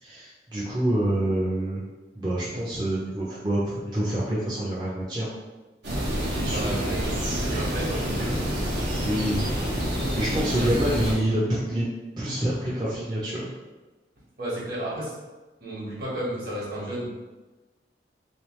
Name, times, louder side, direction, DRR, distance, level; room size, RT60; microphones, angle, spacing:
voice 1, 0.0-1.9 2.1-5.4 6.4-7.0 9.0-9.5 9.9-11.9 12.2-13.5, right 1 dB, 25° right, -8 dB, 0.5 m, -27 dB
sound 1, 5.8-11.1, equal, 80° right, 1.0 m, -27 dB
voice 2, 6.5-8.5 10.3-10.7 11.2-11.4 14.4-15.1 15.6-17.1, right 1 dB, 55° right, -6 dB, 1.4 m, -33 dB
3.4 x 3.2 x 3.1 m, 1.2 s
head